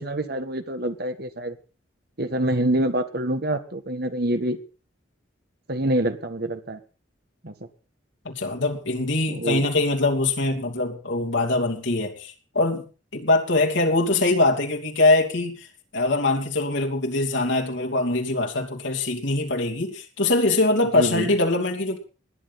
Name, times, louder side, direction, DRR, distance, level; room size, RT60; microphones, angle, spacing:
voice 1, 0.0-1.6 2.2-4.6 5.7-6.8 7.4-7.5 9.3-9.7 20.9-21.3, right 1 dB, 55° right, 9 dB, 1.7 m, -26 dB
voice 2, 8.2-15.7 15.9-22.0, left 2 dB, 70° left, 1 dB, 2.9 m, -23 dB
20.0 x 10.5 x 4.2 m, 0.36 s
head